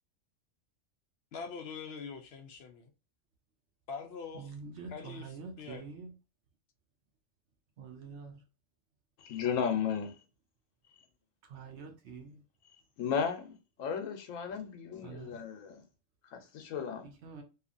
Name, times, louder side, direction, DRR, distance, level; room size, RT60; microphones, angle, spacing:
voice 1, 1.3-2.9 3.9-4.5 4.9-5.8, left 5 dB, 65° left, 0.7 m, -43 dB
voice 2, 4.3-6.1 7.8-8.4 11.5-12.4 15.0-15.4 17.0-17.4, right 5 dB, 65° right, 0.9 m, -46 dB
voice 3, 9.2-10.2 13.0-15.8 16.3-17.1, left 7 dB, 90° left, 1.1 m, -34 dB
2.8 x 2.4 x 2.4 m
omnidirectional pair, 1.3 m